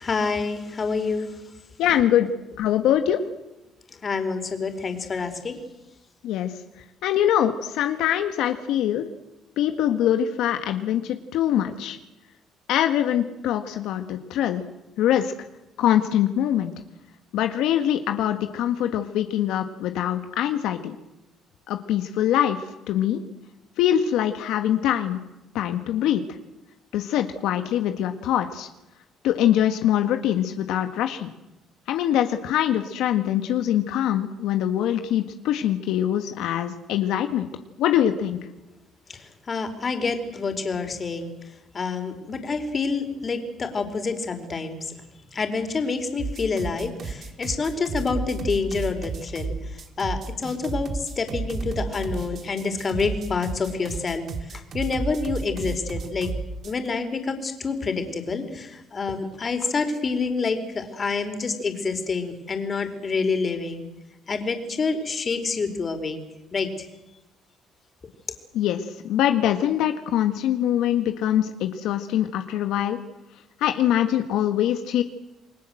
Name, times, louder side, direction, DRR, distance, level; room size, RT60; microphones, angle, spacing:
voice 1, 0.0-1.4 3.9-5.6 39.1-41.3 41.7-44.9 45.3-56.3 56.6-63.9 64.3-66.2 66.5-66.7, left 4 dB, 35° left, 7 dB, 4.5 m, -27 dB
voice 2, 1.8-2.3 2.6-3.2 6.2-6.5 7.0-9.0 9.6-12.0 12.7-14.6 15.0-15.3 15.8-16.7 17.3-21.0 21.7-22.6 22.9-23.2 23.8-25.2 25.5-26.2 26.9-28.7 29.2-31.3 31.9-37.5 37.8-38.4 68.5-73.0 73.6-75.0, left 11 dB, 80° left, 7 dB, 1.7 m, -23 dB
sound 1, 46.2-56.9, right 4 dB, 50° right, 3.1 m, -32 dB
29.0 x 21.0 x 7.9 m, 0.98 s
cardioid pair, 100°, 0 cm